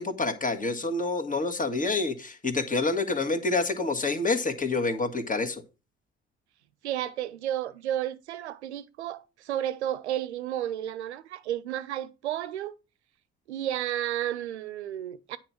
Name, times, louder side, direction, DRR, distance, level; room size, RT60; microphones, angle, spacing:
voice 1, 0.0-5.6, left 3 dB, 25° left, 1.7 m, -27 dB
voice 2, 6.8-12.8 13.5-15.4, right 11 dB, 85° right, 0.6 m, -32 dB
9.6 x 4.5 x 5.9 m
figure-of-eight pair, 45°, 33 cm